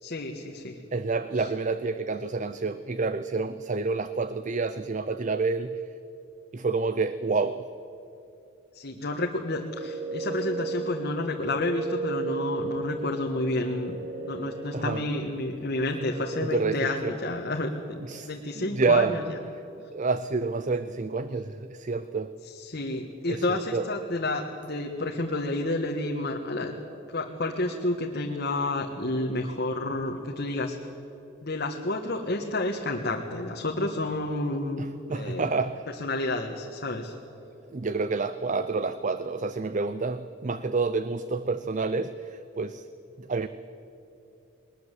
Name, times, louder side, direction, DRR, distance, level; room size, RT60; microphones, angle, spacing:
voice 1, 0.0-0.8 1.3-1.5 8.7-14.0 14.2-19.4 22.4-26.7 27.1-30.8 31.4-35.5 36.0-37.1, left 2 dB, 50° left, 1 dB, 1.5 m, -30 dB
voice 2, 0.9-5.8 6.5-7.6 14.7-15.0 16.4-17.1 18.1-18.3 18.6-19.2 19.9-22.3 23.3-23.9 34.8-35.9 37.7-42.8 43.2-43.5, right 4 dB, 40° right, 13 dB, 0.6 m, -28 dB
sound 1, 9.3-17.2, right 3 dB, 80° right, 3.4 m, -36 dB
21.0 x 20.0 x 8.2 m, 2.8 s
head